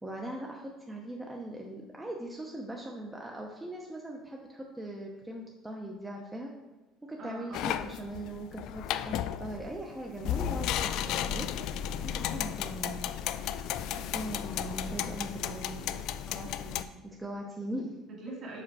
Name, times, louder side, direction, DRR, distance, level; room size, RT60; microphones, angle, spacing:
voice 1, 0.0-6.5 7.0-13.3 14.1-15.4 16.3-18.0, right 1 dB, 10° right, -1 dB, 0.7 m, -40 dB
voice 2, 7.2-8.1 14.6-16.0 18.1-18.6, right 2 dB, 45° right, -1 dB, 2.2 m, -44 dB
sound 1, 7.5-16.8, left 10 dB, 65° left, 0.3 m, -34 dB
5.6 x 4.9 x 4.7 m, 1.1 s
cardioid pair, 125°, 0 cm